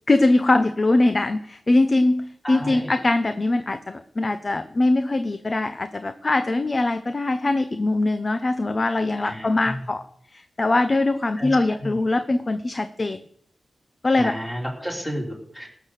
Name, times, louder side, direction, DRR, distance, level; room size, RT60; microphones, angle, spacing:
voice 1, 0.1-10.1 10.3-13.2 14.0-14.4, left 2 dB, 30° left, 11 dB, 0.7 m, -22 dB
voice 2, 2.4-2.9 9.2-9.8 11.4-12.0 14.1-15.7, equal, 10° left, -1 dB, 3.6 m, -32 dB
18.5 x 6.6 x 6.6 m, 0.66 s
wide cardioid pair, 100°, 0 cm